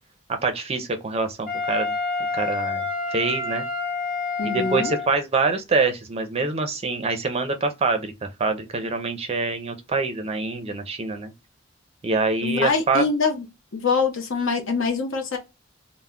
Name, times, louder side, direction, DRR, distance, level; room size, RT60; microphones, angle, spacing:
voice 1, 0.4-1.9 2.3-2.8 3.1-3.6 4.4-11.3 12.0-13.0, right 3 dB, 30° right, 0.4 m, -25 dB
Wind instrument woodwind instrument, 1.5-5.2, left 4 dB, 45° left, 0.9 m, -28 dB
voice 2, 4.4-4.9 12.4-13.4 13.7-15.4, left 4 dB, 75° left, 0.7 m, -24 dB
2.2 x 2.1 x 3.4 m
head